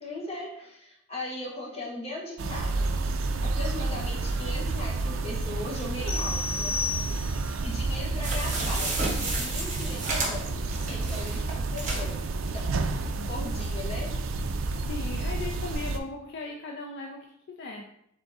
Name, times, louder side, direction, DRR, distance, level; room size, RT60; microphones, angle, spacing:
voice 1, 0.0-2.9 3.4-6.8 7.6-12.2 12.5-12.7 13.3-14.1, left 2 dB, 30° left, -3 dB, 1.1 m, -38 dB
sound 1, 2.4-16.0, right 3 dB, 70° right, 0.4 m, -30 dB
sound 2, 6.1-7.6, left 4 dB, 85° left, 0.7 m, -32 dB
sound 3, 8.2-12.1 12.6-12.7 12.9-13.0, right 2 dB, 35° right, 1.1 m, -32 dB
voice 2, 13.2-13.5 14.9-17.8, left 3 dB, 55° left, 1 dB, 0.4 m, -38 dB
3.6 x 3.5 x 3.9 m, 0.75 s
head